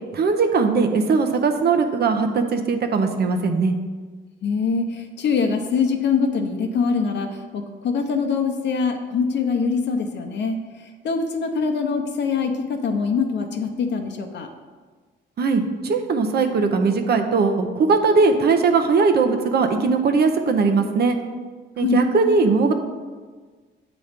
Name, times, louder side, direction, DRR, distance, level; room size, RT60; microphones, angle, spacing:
voice 1, 0.1-3.7 15.4-21.2 21.8-22.7, right 4 dB, 55° right, 6 dB, 0.7 m, -19 dB
voice 2, 4.4-10.6 11.0-14.5 21.8-22.0, left 5 dB, 60° left, 4 dB, 0.7 m, -23 dB
8.2 x 3.0 x 5.1 m, 1.4 s
cardioid pair, 90°, 20 cm